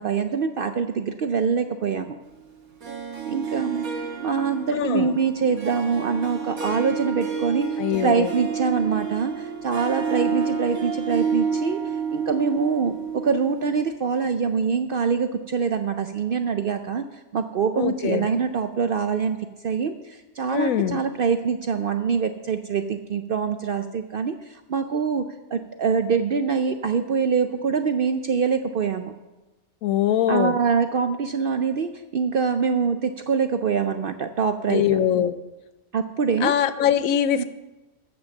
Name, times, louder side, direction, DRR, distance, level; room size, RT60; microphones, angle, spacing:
voice 1, 0.0-2.2 3.3-3.9 4.2-11.8 12.1-17.0 17.3-19.4 19.6-25.3 25.5-29.1 30.3-35.0 35.9-36.5 37.4-37.5, right 5 dB, 60° right, 8 dB, 0.6 m, -24 dB
Harp, 2.8-13.9, right 6 dB, 85° right, 1.9 m, -30 dB
voice 2, 4.7-5.1 7.8-8.3 17.8-18.3 20.5-21.0 29.8-30.5 34.7-35.3 36.4-37.4, left 10 dB, 85° left, 13 dB, 1.0 m, -22 dB
14.0 x 5.4 x 7.1 m, 1.1 s
omnidirectional pair, 1.4 m